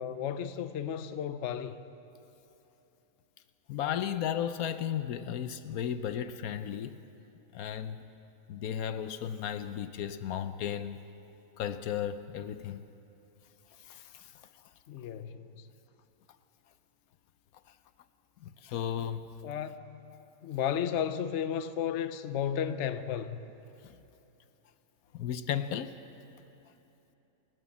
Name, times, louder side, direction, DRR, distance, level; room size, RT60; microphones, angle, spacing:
voice 1, 0.0-1.8 14.9-15.7 19.4-20.1 20.4-23.4, left 9 dB, 60° left, 1.0 m, -33 dB
voice 2, 3.7-7.0 7.5-8.0 8.5-11.0 11.6-12.8 13.8-14.3 18.4-19.3 20.1-20.2 23.8-24.0 25.1-25.9, left 9 dB, 80° left, 1.2 m, -34 dB
28.5 x 12.5 x 7.3 m
omnidirectional pair, 1.5 m